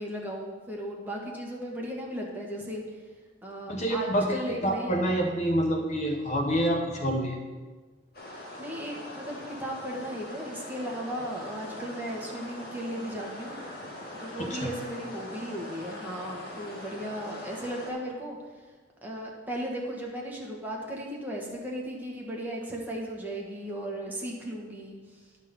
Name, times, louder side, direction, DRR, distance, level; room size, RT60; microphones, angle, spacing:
voice 1, 0.0-2.8 3.4-5.0 8.6-13.6 14.2-18.4 19.0-25.0, equal, 10° right, -2 dB, 1.3 m, -36 dB
voice 2, 3.7-7.4 14.4-14.7, equal, 35° left, 2 dB, 0.8 m, -27 dB
sound 1, 8.1-17.9, left 1 dB, 55° left, 1.8 m, -42 dB
10.5 x 3.7 x 6.7 m, 1.4 s
head